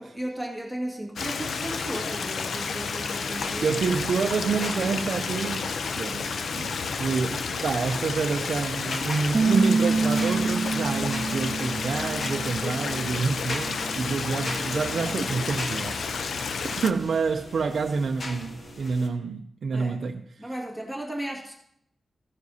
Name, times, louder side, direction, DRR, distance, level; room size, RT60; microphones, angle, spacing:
voice 1, 0.0-3.9 11.2-11.5 19.7-20.1 20.4-21.5, right 1 dB, 5° left, 1.8 m, -35 dB
Stream, 1.2-16.9, left 5 dB, 80° left, 0.5 m, -31 dB
sound 1, 3.3-19.1, left 1 dB, 50° left, 1.2 m, -41 dB
voice 2, 3.6-16.1 16.6-20.5, right 5 dB, 70° right, 0.4 m, -28 dB
Bass guitar, 9.3-15.6, right 4 dB, 25° right, 0.6 m, -28 dB
15.5 x 9.6 x 2.7 m
wide cardioid pair, 165°, 0 cm